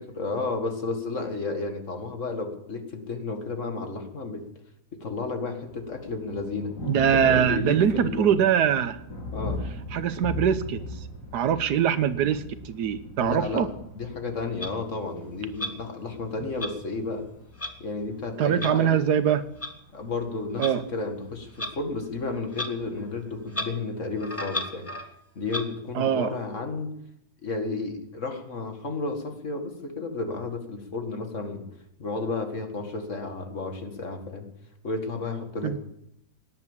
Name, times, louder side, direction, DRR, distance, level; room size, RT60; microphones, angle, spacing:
voice 1, 0.0-4.4 4.9-6.7 7.1-8.3 9.3-9.6 13.2-13.7 13.9-17.3 17.8-19.0 19.9-24.9 25.4-26.9 27.4-31.7 32.0-34.5 34.8-35.8, left 3 dB, 50° left, 5 dB, 2.2 m, -32 dB
Thunder, 5.6-23.5, left 1 dB, 90° left, 4.8 m, -40 dB
voice 2, 6.9-9.0 9.9-11.0 11.3-13.7 18.4-19.4 20.6-20.8 25.9-26.3 35.6-35.8, right 9 dB, 90° right, 13 dB, 1.5 m, -23 dB
Clock, 14.6-14.7 15.6-15.7 16.6-16.7 17.6-17.7 18.6-18.7 19.6-19.7 20.6-20.7 21.6-21.7 22.5-22.7 23.0-23.1 23.5-23.7 24.2-25.1 25.5-25.6, left 1 dB, 10° left, 0.9 m, -32 dB
18.0 x 10.0 x 7.3 m, 0.78 s
omnidirectional pair, 1.7 m